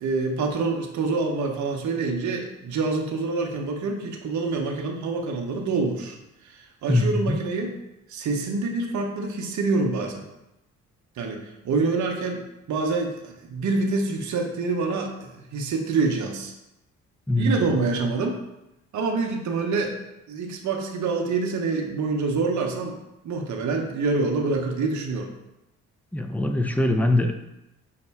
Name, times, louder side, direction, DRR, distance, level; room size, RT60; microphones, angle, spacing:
voice 1, 0.0-6.2 6.5-7.7 8.1-10.2 11.2-12.4 12.7-16.5 17.4-18.4 18.9-19.9 20.3-23.0 23.2-25.3, right 3 dB, 50° right, 2 dB, 0.7 m, -26 dB
voice 2, 6.9-7.4 17.3-17.7 26.1-27.4, left 1 dB, 5° left, 5 dB, 0.4 m, -22 dB
5.4 x 2.1 x 3.4 m, 0.91 s
hypercardioid pair, 45°, 38 cm